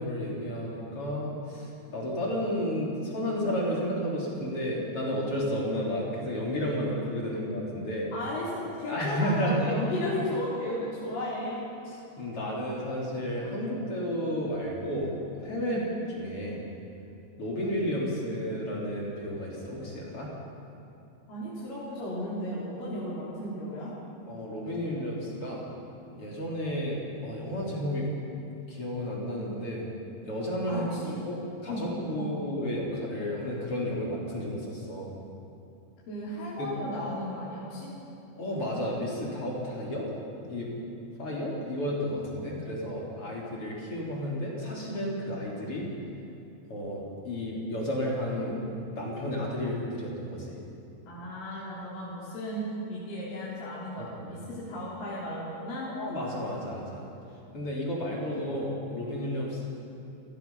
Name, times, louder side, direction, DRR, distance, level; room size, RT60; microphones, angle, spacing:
voice 1, 0.0-8.1 8.8-9.8 11.9-15.1 15.4-15.8 16.2-16.7 17.4-20.3 24.3-25.6 26.1-28.1 28.7-29.8 30.2-30.9 31.2-35.1 36.6-36.7 38.4-40.1 40.4-40.7 41.2-45.9 46.7-48.6 48.9-50.6 54.0-54.4 55.8-57.1 57.5-59.7, equal, 30° left, -4 dB, 3.8 m, -32 dB
voice 2, 8.1-11.6 15.6-15.9 21.3-23.9 30.7-31.2 31.7-31.8 32.1-32.3 36.1-37.9 51.0-55.9, left 1 dB, 50° left, -8 dB, 4.8 m, -35 dB
29.0 x 17.0 x 5.5 m, 2.7 s
omnidirectional pair, 5.4 m